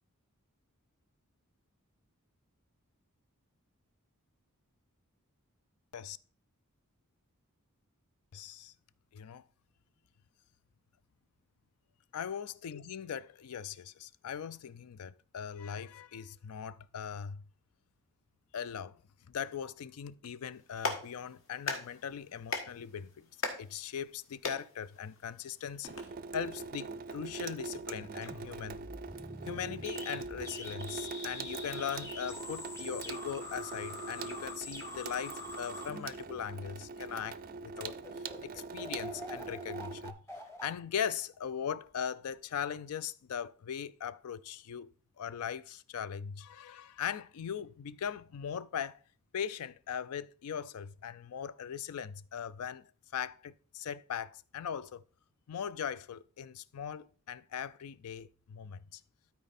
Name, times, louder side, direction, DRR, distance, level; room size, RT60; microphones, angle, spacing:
voice 1, 8.3-8.7 9.1-9.4 12.1-17.4 18.5-19.0 19.3-23.3 23.6-25.9 26.3-28.9 29.5-40.2 40.6-49.0 49.3-55.0 55.5-59.0, left 8 dB, 80° left, 0.4 m, -40 dB
Clapping, 20.5-26.0, left 3 dB, 60° left, 1.5 m, -41 dB
Water tap faucet / Sink (filling or washing), 25.9-40.1, right 4 dB, 40° right, 0.4 m, -43 dB
sound 1, 28.0-36.8 37.4-37.5 37.8-41.7, left 2 dB, 10° left, 1.1 m, -46 dB
12.5 x 4.4 x 4.1 m
head